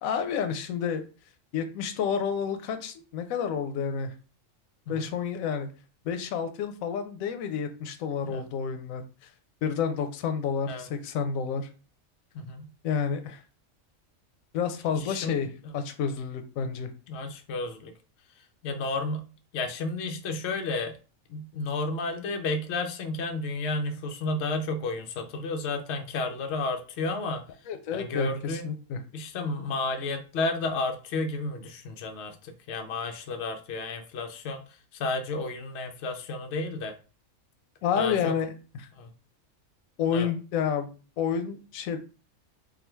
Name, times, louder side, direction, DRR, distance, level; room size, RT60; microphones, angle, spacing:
voice 1, 0.0-1.0 1.5-4.1 4.9-5.7 6.0-9.3 9.6-11.7 12.8-13.4 14.5-16.9 27.7-29.0 37.8-38.9 40.0-40.9 41.2-42.0, left 7 dB, 90° left, 7 dB, 1.0 m, -30 dB
voice 2, 12.3-12.7 14.9-15.4 17.1-17.9 18.6-19.2 19.5-20.9 21.3-27.4 27.9-28.7 29.1-34.6 34.9-36.9 38.0-38.3 39.0-39.1 40.1-40.3, left 3 dB, 60° left, 5 dB, 0.9 m, -32 dB
3.6 x 2.2 x 4.4 m, 0.35 s
omnidirectional pair, 1.4 m